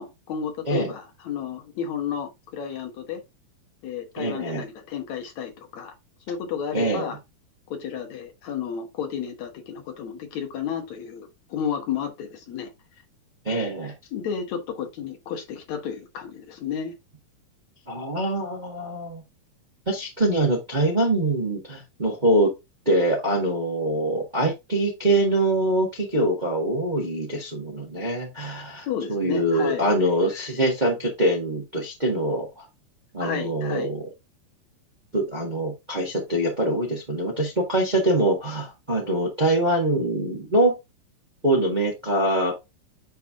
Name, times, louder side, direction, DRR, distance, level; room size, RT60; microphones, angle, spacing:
voice 1, 0.0-3.2 3.8-5.9 6.3-7.2 7.7-12.7 14.1-16.9 28.9-29.9 33.2-33.9, left 7 dB, 65° left, 2.3 m, -32 dB
voice 2, 4.2-4.6 6.7-7.1 13.4-13.9 17.9-19.2 19.9-22.5 22.8-32.7 33.1-34.0 35.1-40.8 41.4-42.5, right 1 dB, 25° right, 1.0 m, -24 dB
10.0 x 3.5 x 3.6 m
omnidirectional pair, 3.7 m